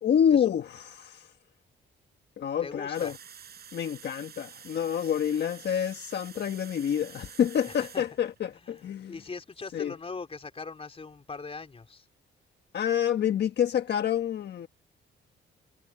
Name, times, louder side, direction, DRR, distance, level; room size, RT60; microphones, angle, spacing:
voice 1, 0.0-1.3 2.4-3.2 3.7-9.1 9.7-9.9 12.7-14.7, left 9 dB, 60° left, 1.4 m, -27 dB
voice 2, 2.6-3.2 5.0-5.1 7.7-8.0 8.5-12.1, left 4 dB, 30° left, 4.2 m, -41 dB
sound 1, 2.9-8.8, right 8 dB, 55° right, 4.7 m, -49 dB
cardioid pair, 90°, 20 cm